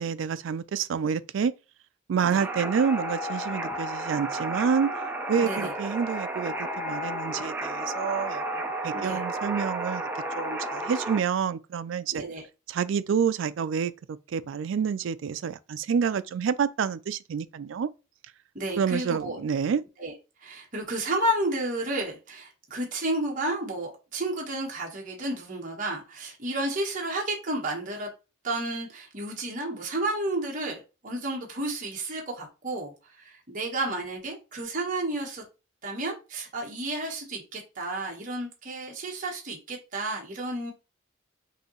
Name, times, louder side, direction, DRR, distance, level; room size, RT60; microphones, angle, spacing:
voice 1, 0.0-1.5 2.1-4.9 5.3-10.1 10.4-12.2 12.7-17.9 18.8-19.8, right 6 dB, 70° right, 0.3 m, -28 dB
sound 1, 2.3-11.2, right 1 dB, 10° right, 0.5 m, -32 dB
voice 2, 5.4-5.7 8.9-9.2 12.1-12.4 18.5-19.4 20.0-20.1 20.4-28.1 28.4-35.4 35.8-40.7, right 1 dB, 40° right, 1.1 m, -31 dB
5.4 x 2.8 x 2.9 m
head